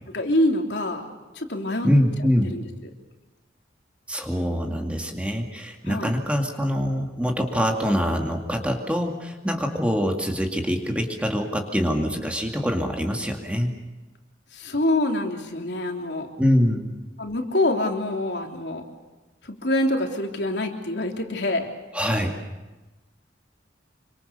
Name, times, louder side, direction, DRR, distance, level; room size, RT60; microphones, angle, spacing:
voice 1, 0.1-1.1 1.4-1.9 2.4-2.6 5.9-6.1 14.5-16.3 17.2-18.8 19.4-21.7, left 1 dB, 65° left, 2 dB, 3.3 m, -25 dB
voice 2, 1.8-2.6 4.1-13.7 16.4-16.9 21.9-22.4, equal, 5° right, 2 dB, 2.2 m, -24 dB
27.0 x 25.0 x 6.8 m, 1.2 s
head